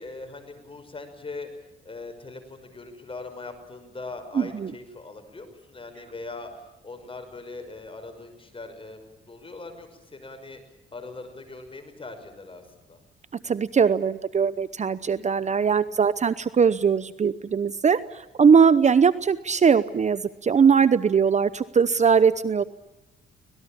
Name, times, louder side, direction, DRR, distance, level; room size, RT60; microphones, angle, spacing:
voice 1, 0.0-1.5 1.8-10.6 10.9-13.0, left 3 dB, 25° left, 8 dB, 5.7 m, -41 dB
voice 2, 4.4-4.7 13.4-22.6, right 6 dB, 35° right, 16 dB, 0.8 m, -20 dB
25.0 x 19.0 x 8.8 m, 0.94 s
cardioid pair, 90°, 20 cm